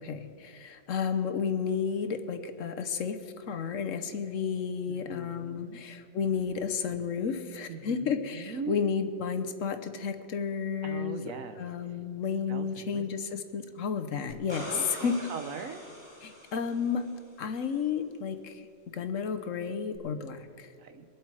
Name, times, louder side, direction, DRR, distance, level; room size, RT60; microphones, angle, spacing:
voice 1, 0.0-15.1 16.2-17.1 17.4-18.6 18.9-20.7, left 6 dB, 70° left, 8 dB, 1.2 m, -32 dB
voice 2, 4.9-5.8 7.7-8.8 10.8-11.6 12.5-13.0 14.7-15.9 20.7-21.0, right 6 dB, 70° right, 9 dB, 1.3 m, -41 dB
sound 1, 14.3-17.1 19.9-20.0, equal, 20° right, 2.5 m, -43 dB
23.5 x 7.8 x 4.8 m, 2.6 s
omnidirectional pair, 1.4 m